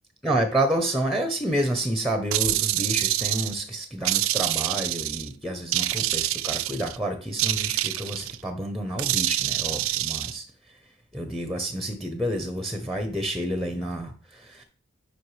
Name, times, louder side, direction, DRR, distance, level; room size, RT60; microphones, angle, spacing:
voice 1, 0.2-10.4 11.1-14.6, right 1 dB, ahead, 6 dB, 0.7 m, -29 dB
sound 1, 2.3-3.6 4.1-5.3 5.7-7.0 7.4-8.4 9.0-10.3, right 15 dB, 90° right, 0.4 m, -26 dB
7.7 x 5.7 x 3.2 m, 0.40 s
head